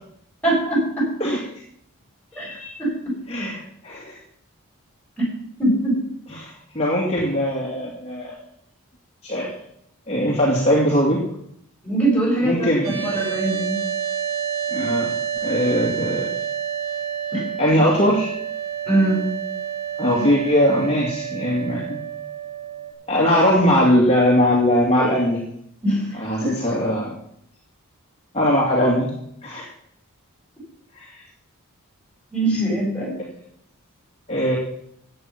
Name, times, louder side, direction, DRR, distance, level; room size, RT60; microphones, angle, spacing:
voice 1, 0.4-1.1 2.3-2.9 5.6-5.9 11.8-12.7 13.0-13.8 17.3-17.4 18.8-19.3 25.8-26.5 32.3-33.2, right 1 dB, 5° left, -3 dB, 7.3 m, -22 dB
voice 2, 2.3-2.7 3.3-4.1 6.3-8.4 9.2-9.5 10.1-11.2 12.4-13.4 14.7-15.1 15.4-16.4 17.6-18.3 20.0-22.0 23.1-25.4 26.2-27.2 28.3-29.1 29.4-29.7 31.0-31.2 34.3-34.6, equal, 30° left, -4 dB, 2.5 m, -20 dB
sound 1, 12.8-22.9, right 8 dB, 70° right, 3.5 m, -29 dB
15.5 x 8.7 x 6.0 m, 0.72 s
head